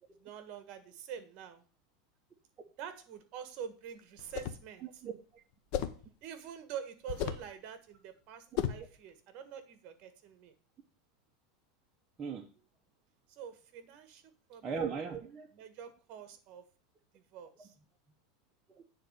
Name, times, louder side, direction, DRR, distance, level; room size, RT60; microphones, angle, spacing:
voice 1, 0.2-1.6 2.8-4.9 6.2-10.5 13.3-14.8 15.5-16.6 17.1-17.7, right 8 dB, 45° right, 9 dB, 1.5 m, -46 dB
sound 1, 4.2-4.7 5.7-6.1 7.1-7.5 8.6-8.9, left 10 dB, 50° left, 0.9 m, -34 dB
voice 2, 4.8-5.4 12.2-12.5 14.6-15.5 17.6-17.7 18.7-18.8, right 6 dB, 20° right, 1 dB, 1.0 m, -38 dB
9.0 x 4.0 x 6.7 m, 0.38 s
supercardioid pair, 145°, 3 cm